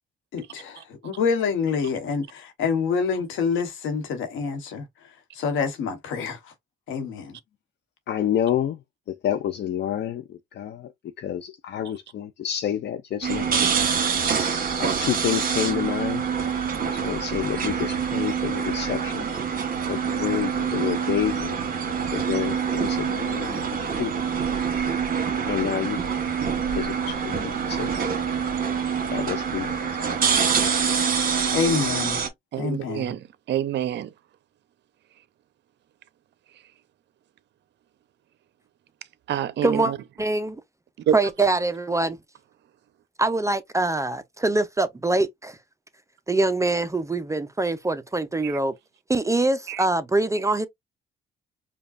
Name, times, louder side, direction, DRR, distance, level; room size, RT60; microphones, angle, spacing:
voice 1, 0.3-4.8 5.3-6.4 6.9-7.4 31.5-32.2 32.6-33.1, left 5 dB, 90° left, 1.2 m, -27 dB
voice 2, 8.1-8.8 9.1-10.9 11.2-13.7 14.0-14.2 14.8-16.3 16.8-19.3 19.9-21.6 22.1-24.1 25.5-26.1 26.7-27.9 29.1-30.1, left 10 dB, 60° left, 0.5 m, -29 dB
sound 1, 13.2-32.3, right 6 dB, 45° right, 1.5 m, -25 dB
voice 3, 32.5-34.1 39.3-40.0 41.1-41.2 48.4-48.6 49.7-49.9, right 10 dB, 60° right, 0.6 m, -27 dB
voice 4, 39.6-39.9 40.2-40.6 41.1-42.2 43.2-45.6 46.3-48.7 49.1-50.7, right 2 dB, 15° right, 0.5 m, -24 dB
5.0 x 2.3 x 2.5 m
cardioid pair, 90°, 20 cm